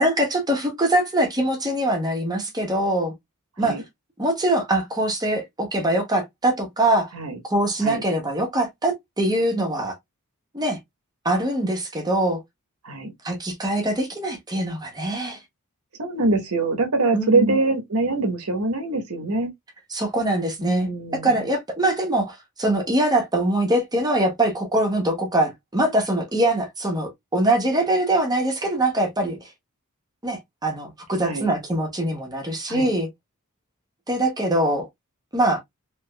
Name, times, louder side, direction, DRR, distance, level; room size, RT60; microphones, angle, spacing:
voice 1, 0.0-3.1 3.6-3.8 4.2-7.1 7.5-10.0 10.5-10.8 11.2-12.4 13.2-15.4 17.1-17.6 19.9-20.9 21.2-29.4 30.2-33.1 34.1-34.9 35.3-35.6, right 1 dB, 20° right, 1.0 m, -23 dB
voice 2, 16.0-19.5 20.6-21.4 31.2-31.5 32.7-32.9, right 3 dB, 75° right, 1.1 m, -24 dB
3.4 x 3.1 x 2.2 m
head